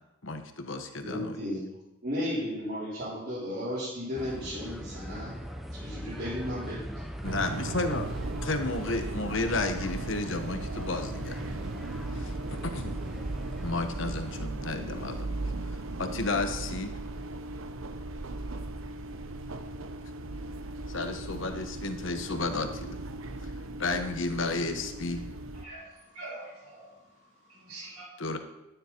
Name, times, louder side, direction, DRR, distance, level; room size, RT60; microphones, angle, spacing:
voice 1, 0.2-1.4 7.2-8.1 8.4-11.4 12.1-13.0 13.6-15.4 16.0-16.9 20.9-23.0 23.4-23.5 23.8-25.2 28.2-28.4, left 3 dB, 65° left, 7 dB, 1.2 m, -32 dB
voice 2, 1.0-1.6 2.0-5.3 5.8-7.0, left 1 dB, 45° right, -11 dB, 4.9 m, -34 dB
sound 1, 4.2-14.5, equal, ahead, 0.7 m, -41 dB
sound 2, 7.2-25.6, right 2 dB, 70° right, 0.8 m, -37 dB
voice 3, 25.5-28.1, right 2 dB, 85° right, -2 dB, 4.7 m, -45 dB
12.0 x 10.0 x 4.5 m, 0.96 s
head